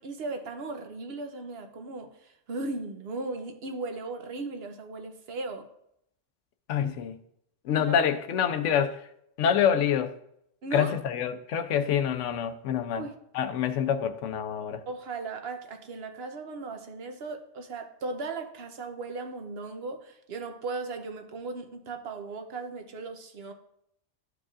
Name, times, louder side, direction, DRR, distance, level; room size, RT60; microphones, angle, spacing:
voice 1, 0.0-5.7 7.8-8.0 10.6-10.9 12.9-13.1 14.9-23.5, right 3 dB, 55° right, 1.0 m, -37 dB
voice 2, 6.7-7.2 7.6-9.0 9.4-10.1 10.7-13.1 13.3-14.8, left 8 dB, 75° left, 1.0 m, -26 dB
13.0 x 4.8 x 2.5 m
omnidirectional pair, 1.3 m